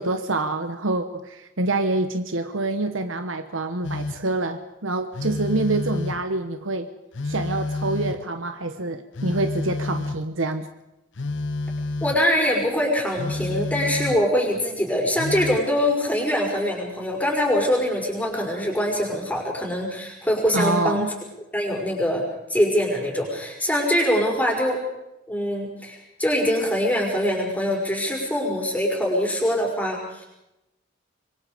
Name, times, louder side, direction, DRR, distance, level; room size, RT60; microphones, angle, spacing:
voice 1, 0.0-6.9 7.2-10.7 20.5-21.1, right 2 dB, 85° right, 8 dB, 1.1 m, -26 dB
Telephone, 3.8-4.4 5.1-6.4 7.1-8.4 9.1-10.4 11.1-12.3 13.2-14.4 15.2-15.7, left 2 dB, 70° left, 0.9 m, -29 dB
voice 2, 12.0-21.1 21.5-22.2 22.5-24.8 25.3-30.2, equal, 10° left, -1 dB, 5.5 m, -23 dB
26.0 x 23.0 x 5.1 m, 0.91 s
head